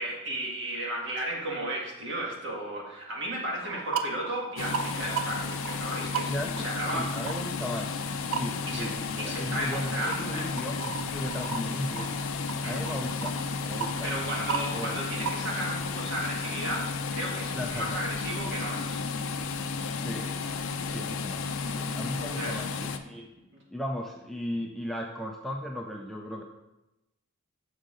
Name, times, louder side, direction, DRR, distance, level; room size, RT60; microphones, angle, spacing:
voice 1, 0.0-7.2 8.7-10.5 12.6-12.8 14.0-19.0 22.2-22.6 23.5-23.6, right 1 dB, 55° right, -2 dB, 1.7 m, -34 dB
sound 1, 3.6-17.0, right 6 dB, 70° right, 0.5 m, -38 dB
sound 2, 4.6-23.0, left 4 dB, 65° left, 0.5 m, -33 dB
voice 2, 6.3-12.1 12.7-14.1 14.7-15.0 17.5-18.0 20.0-20.3 20.8-23.3 23.7-26.4, equal, ahead, 0 dB, 0.3 m, -36 dB
6.5 x 6.4 x 3.8 m, 0.96 s
head